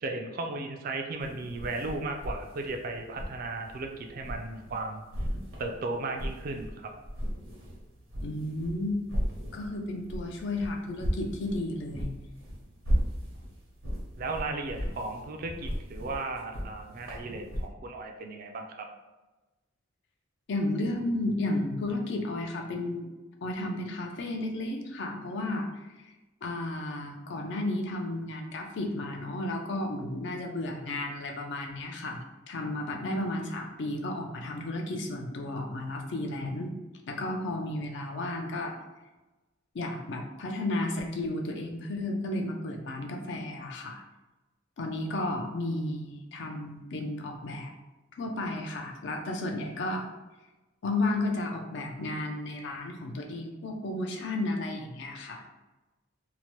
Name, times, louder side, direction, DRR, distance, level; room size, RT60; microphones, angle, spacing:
voice 1, 0.0-5.0 5.6-6.9 14.2-18.9, right 3 dB, 45° right, 3 dB, 0.3 m, -35 dB
sound 1, 1.2-4.8 5.1-6.7 7.0-17.6, equal, 90° right, 0.9 m, -35 dB
voice 2, 8.2-9.0 9.5-12.1 20.5-23.1 23.4-25.9 26.4-36.7 37.1-38.8 39.7-44.0 44.8-47.7 48.2-50.1 50.8-55.4, left 2 dB, 60° left, 2 dB, 0.4 m, -33 dB
2.8 x 2.1 x 3.0 m, 1.1 s
head